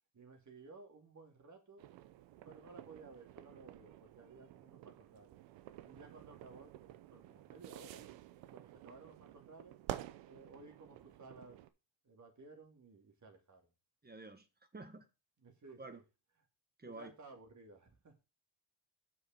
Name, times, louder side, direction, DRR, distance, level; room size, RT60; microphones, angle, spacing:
voice 1, 0.1-1.9 2.3-5.4 5.8-8.1 8.5-9.8 10.2-11.6 12.0-13.7 15.4-16.0 16.9-18.2, right 3 dB, 40° right, 2.8 m, -57 dB
sound 1, 1.8-11.7, right 14 dB, 85° right, 0.8 m, -51 dB
voice 2, 14.0-14.5 14.7-15.1 15.8-16.0 16.8-17.1, right 3 dB, 20° right, 1.5 m, -49 dB
6.4 x 6.2 x 5.8 m
supercardioid pair, 65°, 43 cm